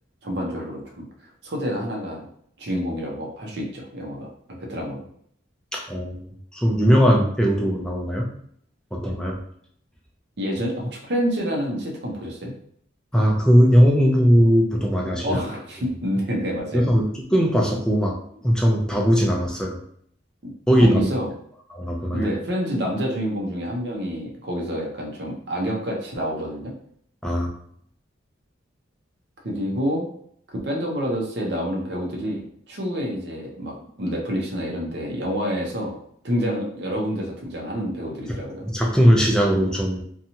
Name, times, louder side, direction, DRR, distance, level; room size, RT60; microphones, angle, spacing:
voice 1, 0.2-1.0 1.4-2.3 2.6-4.3 4.6-5.1 10.4-12.5 15.2-16.8 20.4-20.5 20.8-21.3 22.1-26.7 29.4-30.0 30.6-36.0 36.2-38.7, equal, 60° right, -1 dB, 0.7 m, -28 dB
voice 2, 5.7-8.3 8.9-9.4 13.1-15.4 16.7-19.8 20.7-21.1 21.7-22.3 27.2-27.5 38.6-40.0, equal, 5° left, -1 dB, 0.4 m, -19 dB
2.8 x 2.3 x 2.7 m, 0.64 s
head